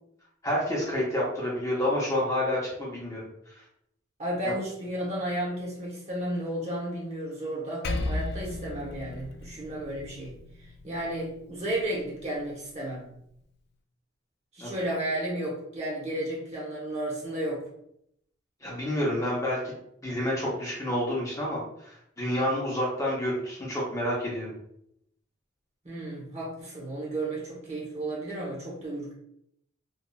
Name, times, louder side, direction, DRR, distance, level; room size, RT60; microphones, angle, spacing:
voice 1, 0.4-3.2 4.4-4.5 14.6-14.7 18.6-19.7 20.0-24.5, left 1 dB, 15° left, -5 dB, 0.6 m, -29 dB
voice 2, 4.2-13.1 14.5-17.6 25.8-29.1, right 1 dB, 35° right, -5 dB, 1.0 m, -33 dB
Percussion, 7.8-12.6, left 2 dB, 60° left, 0.3 m, -36 dB
2.8 x 2.3 x 2.3 m, 0.74 s
head